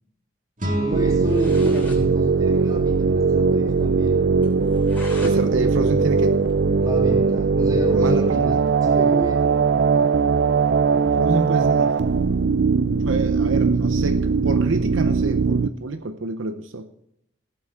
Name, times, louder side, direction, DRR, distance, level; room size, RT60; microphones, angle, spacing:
sound 1, 0.6-3.6, right 1 dB, 40° right, 2.2 m, -32 dB
voice 1, 0.8-4.3 6.7-9.6, equal, 20° right, -2 dB, 3.4 m, -30 dB
sound 2, 0.9-15.7, right 5 dB, 60° right, 0.4 m, -20 dB
sound 3, 1.0-1.1 1.2-2.0 2.4-2.5 2.7-2.8 3.2-3.3 3.7-3.8 4.4-5.4 5.8-7.1, left 2 dB, 10° left, 3.7 m, -42 dB
voice 2, 5.2-6.4 7.9-8.6 11.2-12.0 13.0-16.9, right 3 dB, 80° right, 8 dB, 0.8 m, -28 dB
17.5 x 7.9 x 3.7 m, 0.79 s
head